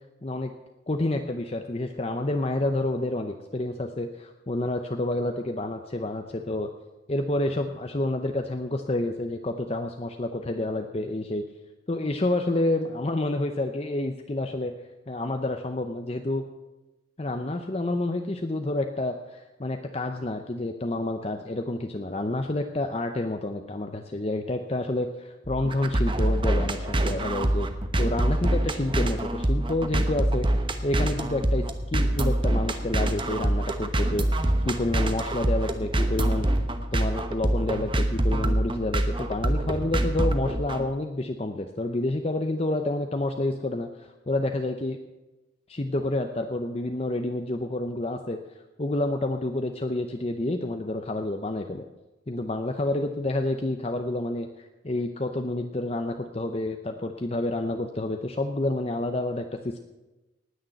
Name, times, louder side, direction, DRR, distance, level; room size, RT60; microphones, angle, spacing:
voice 1, 0.2-0.5 0.9-6.7 7.1-11.4 11.9-14.7 15.1-16.4 17.2-27.7 28.0-30.5 30.8-31.6 31.9-34.3 34.6-36.5 36.9-45.0 45.7-48.4 48.8-51.8 52.3-59.8, left 2 dB, 35° left, 5 dB, 0.7 m, -29 dB
sound 1, 25.5-40.8, right 1 dB, 25° right, 1.0 m, -25 dB
19.0 x 6.6 x 7.8 m, 1.1 s
head